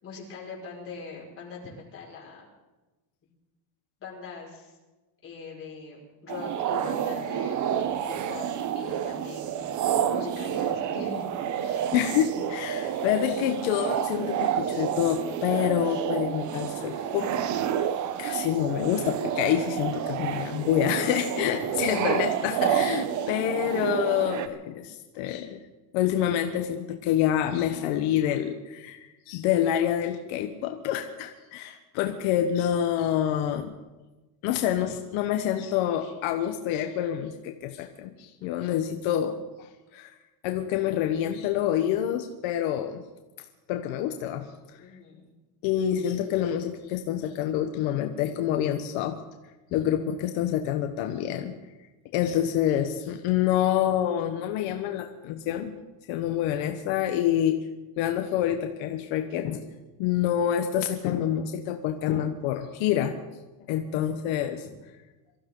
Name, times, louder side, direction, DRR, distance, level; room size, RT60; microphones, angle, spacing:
voice 1, 0.0-2.5 4.0-4.8 5.2-7.7 8.0-8.5 8.7-9.8 10.1-11.3 11.6-11.9 21.9-22.0 44.8-45.3, left 4 dB, 30° left, -4 dB, 5.5 m, -42 dB
sound 1, 6.3-24.5, right 9 dB, 40° right, 0.8 m, -29 dB
voice 2, 11.9-17.9 18.2-25.6 25.9-33.7 34.4-40.1 40.4-43.0 43.7-44.5 45.6-49.2 49.7-51.5 52.1-55.7 56.1-57.6 58.0-59.7 60.0-63.2 63.7-64.6, left 10 dB, 80° left, 5 dB, 1.3 m, -27 dB
24.0 x 15.0 x 3.8 m, 1.1 s
cardioid pair, 170°, 47 cm